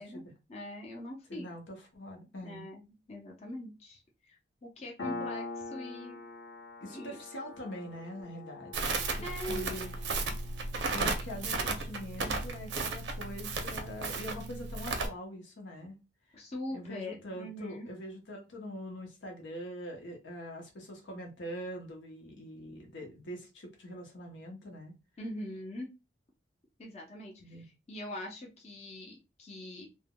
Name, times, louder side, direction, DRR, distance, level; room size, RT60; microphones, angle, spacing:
voice 1, 0.0-1.5 2.4-6.2 6.9-7.2 9.2-9.7 16.3-17.9 25.2-25.9 26.8-29.9, left 1 dB, 35° left, 0.6 m, -42 dB
voice 2, 1.3-2.7 5.0-5.3 6.8-8.9 9.5-9.9 10.9-16.0 16.3-16.4 16.7-25.0 27.4-27.7, equal, 80° left, 0.8 m, -43 dB
Piano, 5.0-12.2, left 3 dB, 60° left, 1.1 m, -44 dB
Crackle, 8.7-15.1, right 3 dB, 70° right, 0.6 m, -34 dB
3.4 x 2.1 x 2.2 m
head